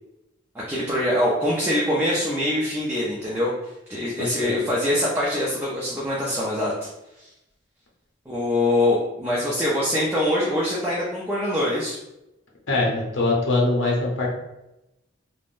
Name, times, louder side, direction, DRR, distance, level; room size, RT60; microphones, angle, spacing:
voice 1, 0.5-3.5 3.9-6.7 7.2-7.3 8.3-12.0, left 1 dB, 10° right, -7 dB, 0.4 m, -23 dB
voice 2, 4.2-4.6 12.7-14.3, left 2 dB, 80° left, -2 dB, 0.7 m, -23 dB
3.4 x 2.1 x 2.5 m, 0.92 s
head